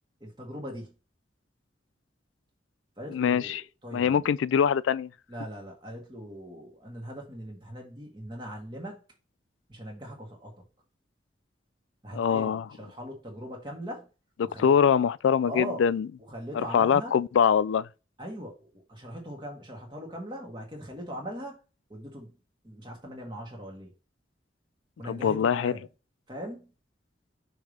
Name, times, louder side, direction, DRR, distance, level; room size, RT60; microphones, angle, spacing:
voice 1, 0.2-0.9 3.0-4.3 5.3-9.0 9.7-10.5 12.0-12.5 12.8-14.1 14.4-14.7 15.4-15.8 16.3-17.2 18.2-21.6 21.9-22.4 22.6-23.9 25.0-25.8 26.3-26.7, equal, 25° right, 1.9 m, -40 dB
voice 2, 3.1-3.6 3.9-5.1 12.1-12.6 14.4-16.1 16.5-17.9 25.1-25.7, left 7 dB, 80° left, 0.3 m, -23 dB
6.3 x 3.4 x 5.1 m
head